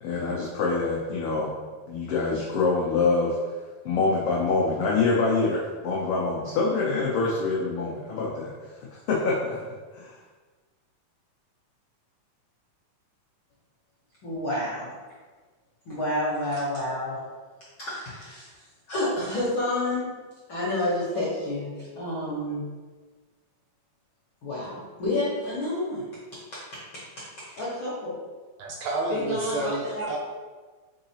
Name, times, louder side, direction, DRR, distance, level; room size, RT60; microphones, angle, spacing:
voice 1, 0.0-1.5 1.9-3.4 3.8-9.6 9.9-10.2, left 3 dB, 85° left, -5 dB, 1.3 m, -25 dB
voice 2, 14.2-14.9 15.9-17.2 17.8-18.5 18.9-20.1 20.5-22.6 24.4-26.0 26.5-27.2 27.6-28.2 29.1-30.2, left 1 dB, 65° left, -8 dB, 1.3 m, -29 dB
voice 3, 28.6-30.2, right 2 dB, 80° right, -1 dB, 1.6 m, -29 dB
4.7 x 3.8 x 2.8 m, 1.4 s
omnidirectional pair, 3.5 m